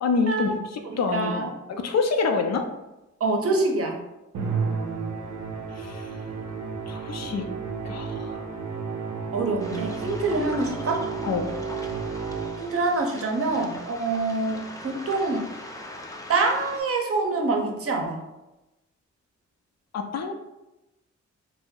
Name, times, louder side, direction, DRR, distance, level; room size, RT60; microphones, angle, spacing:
voice 1, 0.0-2.7 5.7-6.2 6.9-7.4 7.8-8.5 11.2-11.5 19.9-20.3, left 4 dB, 60° left, 5 dB, 0.5 m, -27 dB
voice 2, 0.9-1.5 3.2-4.0 9.3-11.0 12.6-15.5 16.3-18.2, right 3 dB, 50° right, 2 dB, 0.7 m, -25 dB
Musical instrument, 4.3-12.9, right 5 dB, 90° right, 0.5 m, -32 dB
Waves surf, 9.6-16.8, left 1 dB, 10° left, 0.5 m, -41 dB
2.6 x 2.0 x 3.6 m, 0.98 s
cardioid pair, 50°, 30 cm